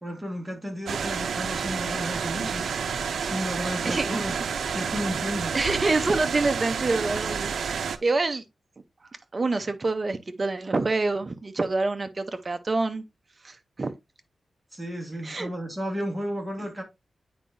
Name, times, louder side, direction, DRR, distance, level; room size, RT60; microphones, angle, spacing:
voice 1, 0.0-2.9 3.2-4.3 4.7-5.5 14.7-16.8, equal, 10° right, 1.7 m, -33 dB
sound 1, 0.9-8.0, right 6 dB, 85° right, 0.5 m, -29 dB
voice 2, 3.8-4.2 5.5-8.5 9.3-13.0 13.4-13.9 15.2-15.5, right 3 dB, 30° right, 0.7 m, -26 dB
9.0 x 4.7 x 2.6 m
wide cardioid pair, 155°, 0 cm